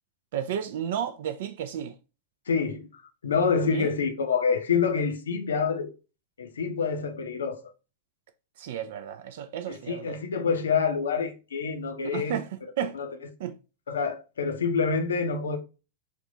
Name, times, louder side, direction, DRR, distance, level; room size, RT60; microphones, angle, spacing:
voice 1, 0.3-1.9 3.7-3.9 8.6-10.2 12.0-12.5 12.8-13.0 13.4-13.5, right 9 dB, 55° right, 0.4 m, -32 dB
voice 2, 2.5-5.9 6.4-7.7 9.7-12.4 12.9-13.2 13.9-15.6, left 5 dB, 70° left, 0.6 m, -27 dB
3.4 x 2.4 x 4.0 m
figure-of-eight pair, 90°, 0 cm